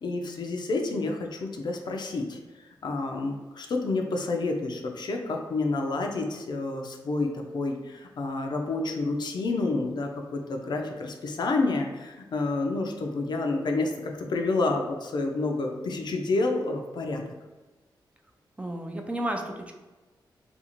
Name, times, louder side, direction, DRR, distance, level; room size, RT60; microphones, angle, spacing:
voice 1, 0.0-2.4 2.8-17.2, left 3 dB, 60° left, 2 dB, 0.4 m, -29 dB
voice 2, 18.6-19.7, right 1 dB, 15° right, 3 dB, 0.4 m, -32 dB
2.5 x 2.4 x 2.9 m, 1.2 s
cardioid pair, 65°, 8 cm